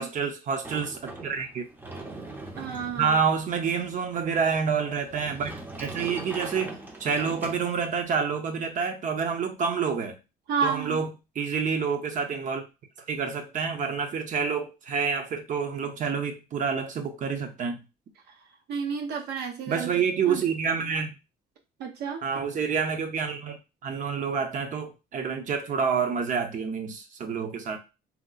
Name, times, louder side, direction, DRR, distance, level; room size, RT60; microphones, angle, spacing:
voice 1, 0.0-1.7 3.0-10.2 10.6-12.6 13.1-17.8 19.7-21.1 22.2-27.8, right 6 dB, 50° right, 0.7 m, -28 dB
Sliding door, 0.6-8.1, right 2 dB, 10° right, 0.6 m, -41 dB
voice 2, 2.6-3.2 10.5-11.0 18.3-18.4 18.7-19.9 20.3-20.4 21.8-22.2, right 6 dB, 75° right, 0.9 m, -31 dB
2.9 x 2.1 x 3.9 m
cardioid pair, 110°, 17 cm